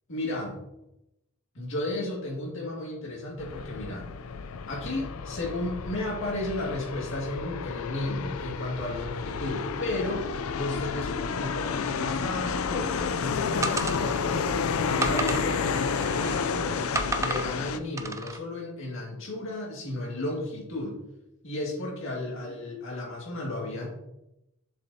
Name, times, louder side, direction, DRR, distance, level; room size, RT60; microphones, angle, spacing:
voice 1, 0.1-0.6 1.5-4.1 4.7-10.3 10.5-14.5 14.8-16.9 17.2-21.0 21.4-23.9, left 2 dB, 60° left, -2 dB, 2.1 m, -33 dB
sound 1, 3.4-17.8, left 5 dB, 80° left, 0.5 m, -31 dB
sound 2, 13.6-14.4 15.0-16.5 16.9-17.5 18.0-18.4, right 2 dB, 15° right, 0.4 m, -32 dB
7.2 x 6.4 x 2.8 m, 0.88 s
head